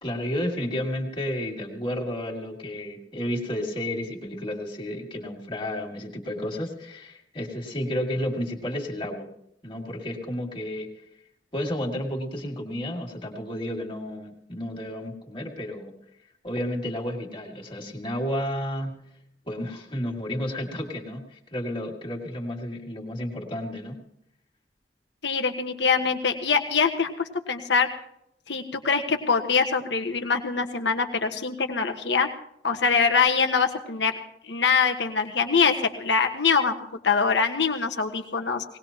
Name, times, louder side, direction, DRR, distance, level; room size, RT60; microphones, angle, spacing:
voice 1, 0.0-9.3 9.6-10.9 11.5-15.9 16.4-19.0 19.5-24.0, left 1 dB, 30° left, 0 dB, 2.5 m, -31 dB
voice 2, 25.2-27.9 28.5-32.3 32.6-34.1 34.4-35.7 36.0-36.7 37.0-38.6, left 5 dB, 80° left, 5 dB, 1.5 m, -23 dB
20.0 x 19.0 x 3.0 m, 0.75 s
head